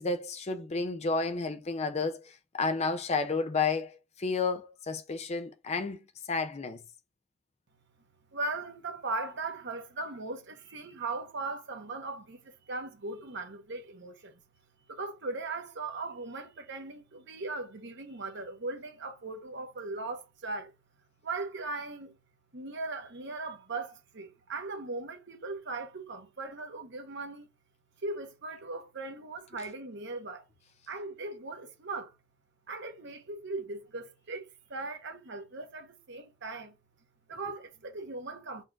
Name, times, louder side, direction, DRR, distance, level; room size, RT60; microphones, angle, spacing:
voice 1, 0.0-6.0 6.3-6.8, left 4 dB, 30° left, 0.4 m, -31 dB
voice 2, 8.3-14.4 14.9-20.7 21.2-22.2 22.5-27.5 28.0-30.5 30.9-32.1 32.7-36.8 37.3-38.6, right 3 dB, 60° right, 0.9 m, -38 dB
4.2 x 2.5 x 4.5 m
head